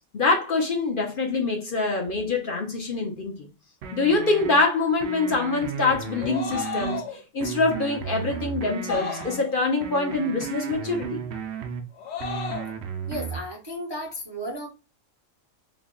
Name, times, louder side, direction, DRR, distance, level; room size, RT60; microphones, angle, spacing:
voice 1, 0.1-3.5 3.9-7.0 7.3-11.3, left 3 dB, 50° left, 0.8 m, -24 dB
sound 1, 3.8-4.6 5.0-7.0 7.4-9.4 9.8-11.8 12.2-13.4, right 7 dB, 65° right, 0.8 m, -34 dB
sound 2, 6.1-7.2 8.9-9.6 11.9-12.7, left 7 dB, 70° left, 1.0 m, -33 dB
voice 2, 13.1-14.7, equal, 30° right, 0.5 m, -34 dB
3.4 x 2.2 x 3.7 m
omnidirectional pair, 1.3 m